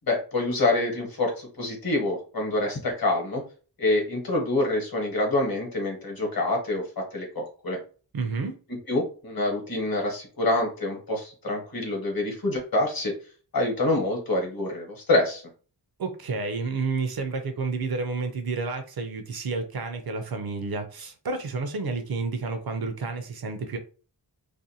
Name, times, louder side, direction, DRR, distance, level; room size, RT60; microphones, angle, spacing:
voice 1, 0.1-3.4 3.8-7.8 8.7-13.1 13.5-15.4, left 2 dB, 50° left, 1.0 m, -26 dB
voice 2, 8.1-8.6 16.0-23.8, right 4 dB, 55° right, 0.5 m, -30 dB
2.5 x 2.1 x 2.7 m
wide cardioid pair, 100°, 44 cm